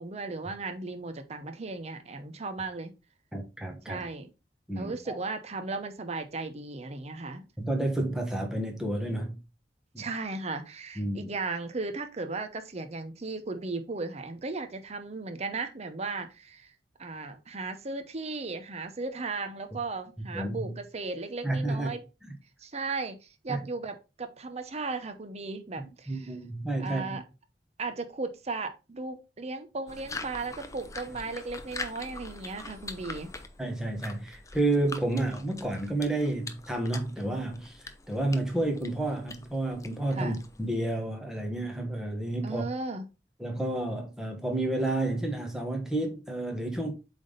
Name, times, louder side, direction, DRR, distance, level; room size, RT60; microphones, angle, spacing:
voice 1, 0.0-2.9 3.9-4.3 4.7-7.5 10.0-16.7 17.0-22.0 22.6-26.3 26.8-27.2 27.8-33.4 40.1-40.4 42.4-43.0, right 3 dB, 35° right, 0.7 m, -36 dB
voice 2, 3.3-4.0 4.7-5.2 7.6-9.4 9.9-10.1 11.0-11.3 20.3-20.7 21.4-21.9 23.5-23.6 25.8-27.2 33.6-42.6 43.4-46.9, right 2 dB, 5° right, 1.3 m, -30 dB
sound 1, 29.9-40.7, left 3 dB, 20° left, 0.6 m, -44 dB
7.9 x 3.5 x 3.9 m
head